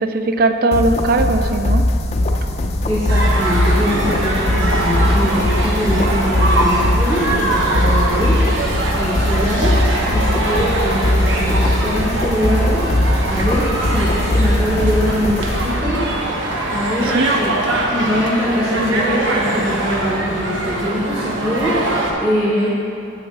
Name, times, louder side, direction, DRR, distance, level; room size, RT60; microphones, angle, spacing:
voice 1, 0.0-1.9 17.1-17.3, right 2 dB, 45° right, 8 dB, 0.4 m, -18 dB
sound 1, 0.7-16.2, left 1 dB, 30° left, 0.4 m, -19 dB
voice 2, 2.8-8.4 8.9-9.8 10.1-12.9 13.3-16.0 16.7-17.5 17.9-22.7, equal, 10° right, -8 dB, 1.1 m, -22 dB
sound 2, 3.1-22.1, right 1 dB, 65° right, 1.0 m, -22 dB
8.8 x 7.7 x 3.2 m, 2.7 s
head